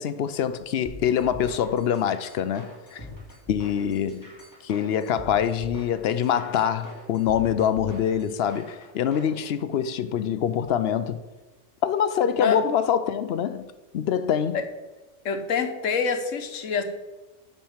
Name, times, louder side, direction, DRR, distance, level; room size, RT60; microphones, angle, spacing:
voice 1, 0.0-3.1 3.5-4.3 4.6-11.2 11.8-13.7 13.9-14.6, left 8 dB, 65° left, 0.7 m, -25 dB
sound 1, 0.8-9.3, left 1 dB, 15° left, 1.9 m, -43 dB
voice 2, 15.2-16.8, left 6 dB, 85° left, 1.3 m, -26 dB
7.3 x 5.7 x 7.2 m
omnidirectional pair, 1.3 m